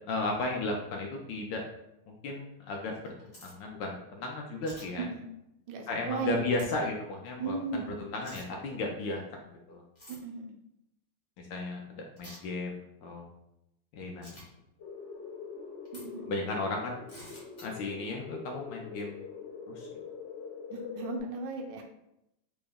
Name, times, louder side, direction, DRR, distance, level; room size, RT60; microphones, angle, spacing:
voice 1, 0.1-1.6 2.1-5.1 5.9-9.2 9.5-9.8 11.4-13.3 13.9-14.3 16.3-16.9 17.6-19.1 19.7-19.9, left 2 dB, 75° left, 1 dB, 1.1 m, -35 dB
sound 1, 2.9-3.5 4.6-4.9 6.6-6.7 8.2-8.4 10.0-10.2 12.2-12.4 14.2-14.4 15.9-16.0 17.1-17.7, equal, 40° left, 0.6 m, -49 dB
voice 2, 5.7-6.5 7.4-7.9 10.1-10.5 15.9-16.4 20.7-21.8, right 4 dB, 75° right, 2 dB, 1.1 m, -36 dB
sound 2, 14.8-21.2, left 5 dB, 90° left, 0.6 m, -43 dB
3.8 x 2.1 x 3.5 m, 0.83 s
omnidirectional pair, 2.3 m